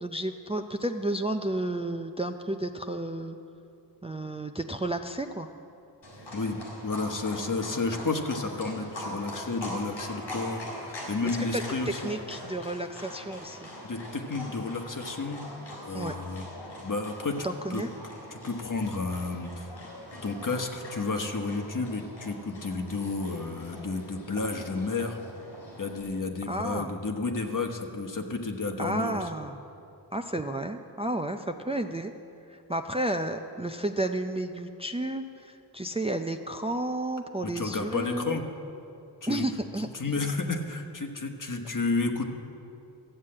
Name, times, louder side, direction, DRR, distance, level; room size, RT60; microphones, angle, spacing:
voice 1, 0.0-3.4 4.0-5.5 11.3-11.6 12.0-13.7 15.9-16.1 17.4-17.9 26.5-26.9 28.8-29.6 30.1-32.1 32.5-38.4 39.3-39.9, right 1 dB, 15° right, 5 dB, 0.5 m, -32 dB
Livestock farm animals working animals, 6.0-26.0, left 1 dB, 85° left, 3.7 m, -42 dB
voice 2, 6.3-12.1 13.8-15.4 15.8-16.5 16.8-17.8 18.3-19.7 20.2-25.2 25.8-29.3 37.4-38.4 39.2-39.5 39.8-42.3, left 3 dB, 45° left, 4 dB, 1.3 m, -31 dB
13.5 x 7.3 x 8.7 m, 2.7 s
wide cardioid pair, 75°, 43 cm